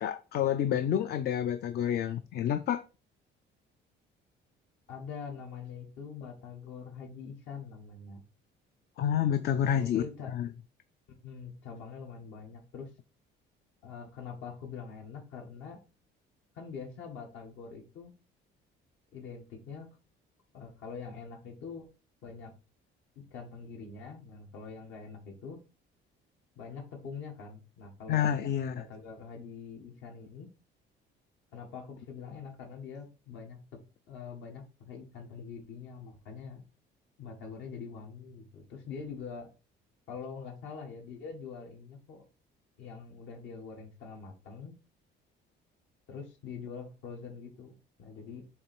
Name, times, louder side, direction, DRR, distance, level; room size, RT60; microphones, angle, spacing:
voice 1, 0.0-2.8 9.0-10.0 10.3-10.5 28.1-28.8, left 9 dB, 55° left, 0.5 m, -29 dB
voice 2, 4.9-8.2 9.7-10.4 11.2-12.9 13.8-15.8 16.6-18.1 19.1-19.9 20.5-21.9 22.2-22.5 23.2-25.6 26.6-28.3 28.7-30.5 31.5-33.6 34.1-36.6 37.2-39.5 40.1-42.2 42.8-44.7 46.1-48.4, left 5 dB, 75° left, 1.8 m, -44 dB
7.1 x 3.1 x 4.4 m
cardioid pair, 140°, 20 cm